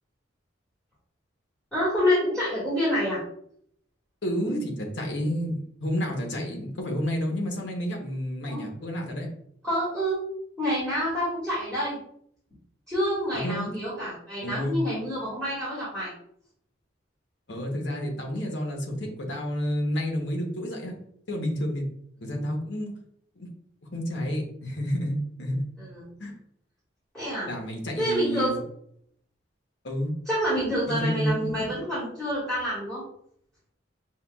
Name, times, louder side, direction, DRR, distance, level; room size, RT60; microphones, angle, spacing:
voice 1, 1.7-3.2 8.5-8.7 9.6-10.2 10.6-12.0 12.9-16.1 25.8-26.1 27.1-27.5 28.0-28.6 30.3-33.0, equal, 5° left, -11 dB, 1.4 m, -27 dB
voice 2, 4.2-9.3 13.3-13.7 14.4-14.8 17.5-21.0 21.3-21.9 22.2-22.9 23.4-23.5 23.9-25.6 26.2-26.4 27.5-28.6 29.8-30.1 30.9-31.8, equal, 60° left, 1 dB, 0.9 m, -30 dB
5.6 x 2.2 x 2.3 m, 0.69 s
head